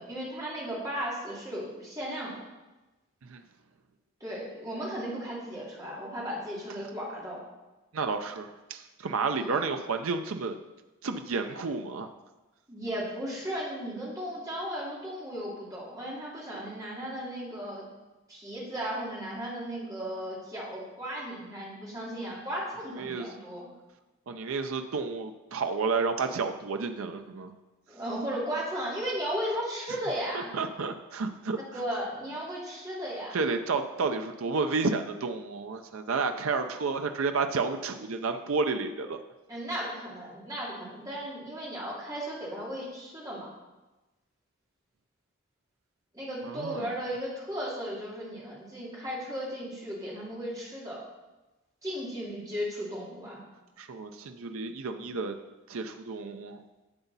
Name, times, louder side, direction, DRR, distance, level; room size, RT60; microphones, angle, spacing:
voice 1, 0.0-2.4 4.2-7.4 9.4-9.6 12.7-17.9 18.3-23.6 27.9-30.5 31.7-33.4 39.5-43.5 46.1-51.0 51.8-53.4, equal, 15° right, -6 dB, 2.6 m, -35 dB
voice 2, 7.9-10.6 11.0-12.1 23.0-23.3 24.3-27.5 30.3-31.6 33.3-39.2 46.4-46.9 53.8-55.3 55.7-56.6, right 4 dB, 80° right, 7 dB, 0.5 m, -31 dB
10.5 x 7.0 x 4.1 m, 1.1 s
head